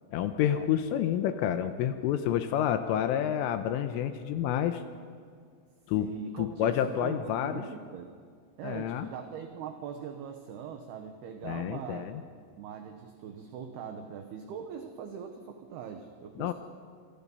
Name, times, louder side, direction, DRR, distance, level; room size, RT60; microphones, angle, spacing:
voice 1, 0.1-4.8 5.9-6.1 6.4-7.6 8.6-9.1 11.4-12.2 16.4-16.5, left 10 dB, 80° left, 8 dB, 3.4 m, -29 dB
voice 2, 6.0-8.1 8.6-12.1 12.6-16.5, right 7 dB, 70° right, 5 dB, 2.7 m, -41 dB
29.0 x 27.5 x 5.6 m, 2.1 s
omnidirectional pair, 6.0 m